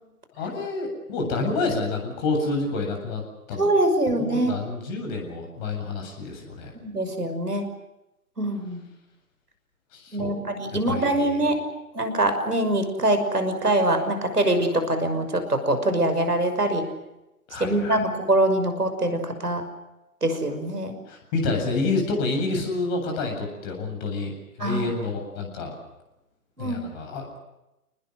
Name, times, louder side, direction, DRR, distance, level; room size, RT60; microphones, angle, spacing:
voice 1, 0.4-3.2 3.5-3.7 4.2-6.7 9.9-10.4 10.7-11.5 17.5-18.0 21.1-25.7 26.6-27.4, left 3 dB, 30° left, 2 dB, 7.9 m, -28 dB
voice 2, 3.6-4.6 6.7-7.6 8.4-8.8 10.1-11.6 11.9-16.8 17.6-19.6 20.2-20.9 24.6-24.9 26.6-26.8, right 1 dB, 85° right, 7 dB, 6.1 m, -23 dB
29.5 x 20.0 x 7.8 m, 0.94 s
figure-of-eight pair, 135°, 45 cm